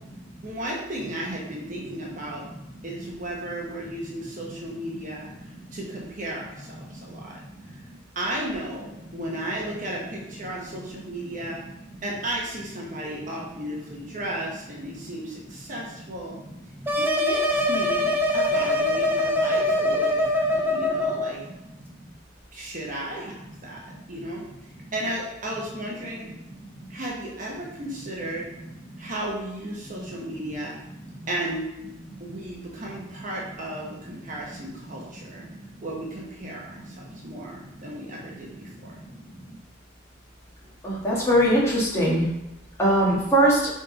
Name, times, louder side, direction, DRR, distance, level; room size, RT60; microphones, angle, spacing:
voice 1, 0.4-2.4 2.8-7.4 7.7-7.8 8.1-11.6 12.0-16.4 17.0-21.4 22.5-23.3 23.6-26.3 26.9-28.5 29.0-30.7 31.3-31.7 32.2-35.5 35.8-38.9, right 1 dB, 40° right, -3 dB, 1.1 m, -34 dB
sound 1, 16.9-21.3, left 1 dB, 10° right, 0.6 m, -23 dB
voice 2, 40.8-42.2 42.8-43.6, right 1 dB, 15° left, -7 dB, 2.0 m, -20 dB
5.0 x 4.3 x 5.2 m, 0.91 s
head